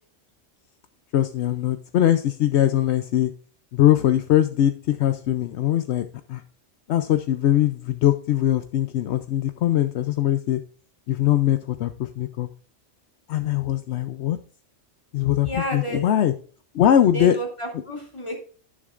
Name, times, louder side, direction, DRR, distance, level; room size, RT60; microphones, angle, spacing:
voice 1, 1.1-3.3 3.7-6.4 6.9-10.6 11.1-12.5 13.3-14.4 15.1-16.3 16.7-17.4, left 11 dB, 75° left, 9 dB, 0.9 m, -21 dB
voice 2, 15.4-16.0 17.1-18.4, equal, 25° left, 0 dB, 2.6 m, -31 dB
11.0 x 10.0 x 2.5 m, 0.41 s
omnidirectional pair, 1.2 m